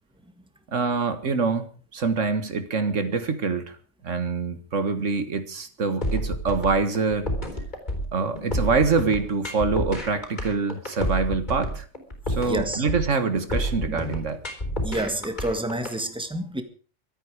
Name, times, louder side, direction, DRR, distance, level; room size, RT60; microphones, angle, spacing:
voice 1, 0.7-1.7 1.9-3.7 4.0-7.3 8.1-11.9 12.3-14.4, right 4 dB, 80° right, 1.9 m, -25 dB
sound 1, 6.0-15.9, equal, 35° left, 4.1 m, -29 dB
voice 2, 12.5-12.8 13.9-14.0 14.8-16.6, right 1 dB, 5° right, 1.6 m, -28 dB
24.0 x 9.3 x 4.9 m
omnidirectional pair, 1.3 m